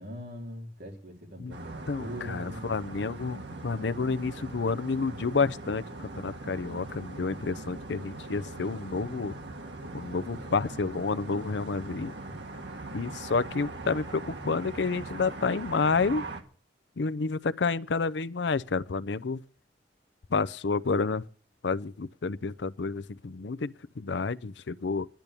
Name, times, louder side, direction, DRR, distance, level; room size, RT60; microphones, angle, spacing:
voice 1, 0.0-2.7 12.3-12.4, equal, 60° right, 3.7 m, -41 dB
sound 1, 1.5-16.4, right 2 dB, 75° right, 1.7 m, -41 dB
voice 2, 1.9-9.4 9.9-12.1 12.9-16.2 17.0-19.4 20.3-21.2 21.6-25.1, left 4 dB, 75° left, 0.6 m, -30 dB
10.5 x 10.5 x 8.3 m
head